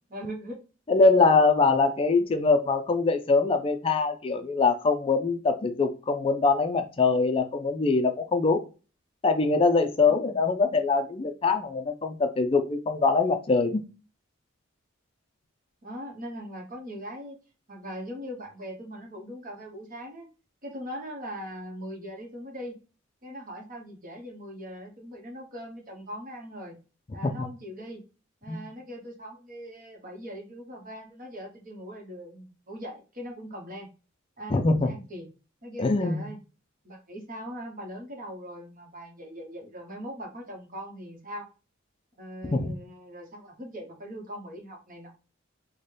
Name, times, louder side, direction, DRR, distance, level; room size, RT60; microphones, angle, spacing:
voice 1, 0.1-0.6 10.1-10.4 15.8-17.4 17.7-20.3 20.6-22.8 23.2-26.7 27.1-28.0 28.4-33.9 34.4-35.3 35.6-36.4 36.8-41.5 42.2-45.1, equal, 45° right, 2 dB, 1.1 m, -40 dB
voice 2, 0.9-8.7 9.2-13.8 28.5-28.6 34.5-34.9 35.8-36.3 42.5-42.7, left 4 dB, 30° left, 7 dB, 0.4 m, -23 dB
4.0 x 2.2 x 3.3 m, 0.33 s
head